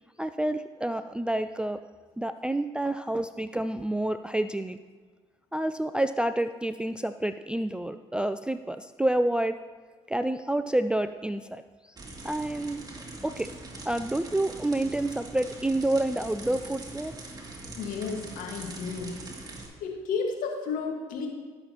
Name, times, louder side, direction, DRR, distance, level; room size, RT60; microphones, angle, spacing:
voice 1, 0.2-1.8 2.2-4.8 5.5-9.6 10.1-11.9 12.2-13.5 13.8-17.1, right 1 dB, 5° right, 10 dB, 0.4 m, -29 dB
sound 1, 12.0-19.7, right 2 dB, 25° right, 2.4 m, -42 dB
voice 2, 17.8-19.2 19.8-21.3, left 5 dB, 70° left, 2 dB, 1.7 m, -32 dB
16.5 x 6.8 x 2.9 m, 1.4 s
hypercardioid pair, 50°, 15 cm